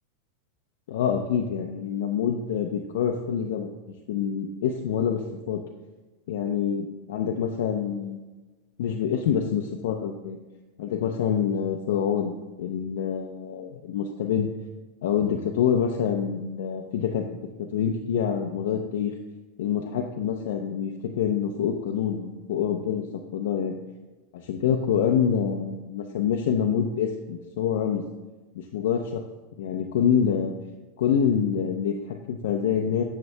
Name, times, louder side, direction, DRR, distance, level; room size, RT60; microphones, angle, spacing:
voice 1, 0.9-3.7 4.1-5.6 6.3-8.2 8.8-10.4 10.8-12.3 12.6-14.5 15.0-17.4 17.7-19.1 19.6-23.0 23.3-23.8 24.3-28.0 28.6-29.2 29.6-30.5 31.0-33.0, left 8 dB, 70° left, 2 dB, 0.6 m, -26 dB
10.5 x 6.7 x 2.2 m, 1.2 s
supercardioid pair, 155°, 0 cm